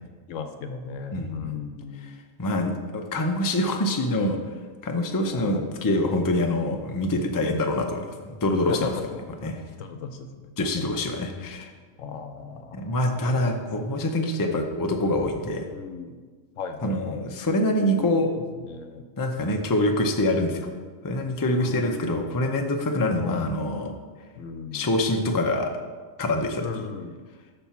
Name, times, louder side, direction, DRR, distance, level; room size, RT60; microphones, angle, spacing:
voice 1, 0.3-2.1 5.3-5.8 7.5-8.0 8.7-9.2 9.8-10.3 12.0-13.0 13.2-13.4 15.7-16.2 16.6-17.3 18.5-19.1 20.8-21.1 21.6-22.4 23.2-23.5 24.4-24.9 26.6-27.2, left 5 dB, 70° left, 7 dB, 1.0 m, -37 dB
voice 2, 1.1-1.5 2.4-4.4 4.8-8.9 9.4-9.6 10.6-11.7 12.7-15.7 16.8-18.3 19.2-20.7 21.0-23.9 24.7-25.7 26.2-26.7, left 1 dB, 25° left, 3 dB, 0.5 m, -25 dB
7.2 x 5.4 x 5.9 m, 1.5 s
omnidirectional pair, 1.4 m